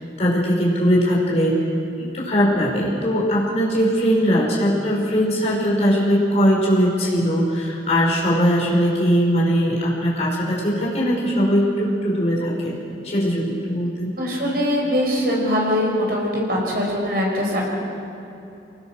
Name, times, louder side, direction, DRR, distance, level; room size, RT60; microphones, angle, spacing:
voice 1, 0.2-1.6 2.0-12.8 13.0-14.1, equal, 40° left, -5 dB, 5.3 m, -20 dB
voice 2, 14.2-17.6, equal, 55° right, -2 dB, 5.8 m, -22 dB
25.5 x 20.0 x 6.4 m, 2.8 s
head